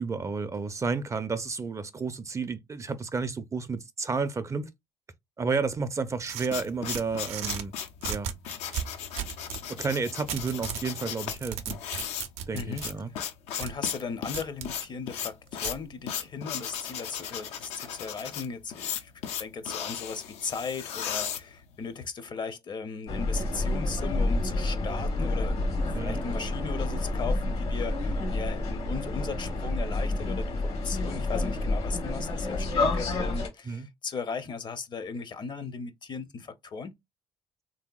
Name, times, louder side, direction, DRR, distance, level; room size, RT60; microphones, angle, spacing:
voice 1, 0.0-4.7 5.4-7.7 8.1-8.3 9.8-11.8 12.5-13.1 25.9-26.2 33.7-33.9, right 4 dB, 30° right, 0.4 m, -31 dB
sound 1, 6.1-22.1, left 9 dB, 90° left, 0.4 m, -36 dB
sound 2, 6.2-7.6 8.0-9.6 10.3-10.9 11.3-12.9 13.6-13.7 14.3-14.7 15.6-15.8, right 9 dB, 90° right, 0.4 m, -35 dB
voice 2, 12.5-12.8 13.1-13.3 13.6-36.9, left 5 dB, 45° left, 0.5 m, -37 dB
sound 3, 23.1-33.5, left 2 dB, 75° left, 1.0 m, -29 dB
3.3 x 2.7 x 2.2 m
cardioid pair, 80°, 11 cm